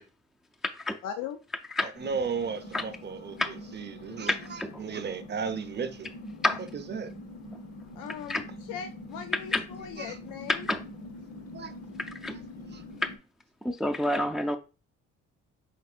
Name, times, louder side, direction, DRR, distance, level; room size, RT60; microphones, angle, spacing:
voice 1, 1.0-1.4 8.0-10.7, left 8 dB, 90° left, 0.5 m, -39 dB
voice 2, 1.8-6.1 6.7-7.1 10.0-10.2 11.5-11.7 12.7-12.8, right 5 dB, 35° right, 0.6 m, -35 dB
sound 1, 1.9-13.2, left 1 dB, 55° left, 0.9 m, -44 dB
voice 3, 4.3-4.7 6.4-6.6 8.3-8.4 9.5-9.6 10.5-10.8 12.2-12.3 13.6-14.6, left 2 dB, ahead, 0.4 m, -28 dB
5.3 x 3.5 x 2.4 m
cardioid pair, 90°, 30 cm